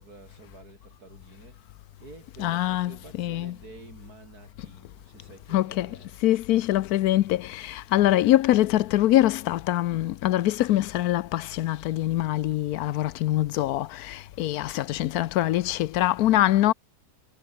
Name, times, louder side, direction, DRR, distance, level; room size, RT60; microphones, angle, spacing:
voice 1, 0.0-1.7 2.0-6.2, right 3 dB, 80° right, 4.8 m, -49 dB
voice 2, 2.4-3.5 5.5-16.7, left 14 dB, 80° left, 1.1 m, -24 dB
omnidirectional pair, 1.6 m